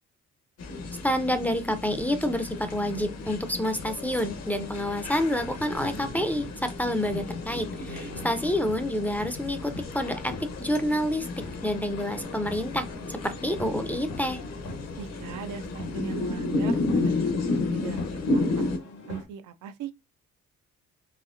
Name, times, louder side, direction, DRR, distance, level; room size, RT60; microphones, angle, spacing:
sound 1, 0.6-18.8, left 3 dB, 55° left, 0.8 m, -32 dB
voice 1, 1.0-10.3 10.6-11.3 11.6-14.4, left 1 dB, 5° left, 0.4 m, -28 dB
sound 2, 2.0-19.3, left 2 dB, 75° left, 1.2 m, -46 dB
voice 2, 7.8-8.3 15.0-18.6 19.1-19.9, right 8 dB, 85° right, 0.5 m, -39 dB
4.2 x 2.8 x 2.5 m
cardioid pair, 90°, 30 cm